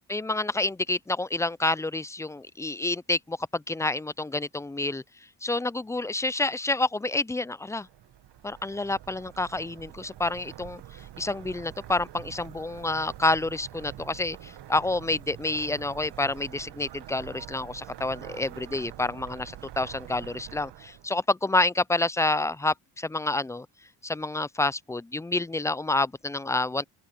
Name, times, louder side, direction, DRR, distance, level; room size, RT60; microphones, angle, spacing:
voice 1, 0.1-5.0 5.4-7.9 8.4-10.8 11.2-23.7 24.0-26.9, left 2 dB, 10° left, 0.3 m, -28 dB
sound 1, 7.7-21.2, right 12 dB, 80° right, 1.6 m, -45 dB
open air
cardioid pair, 90°, 41 cm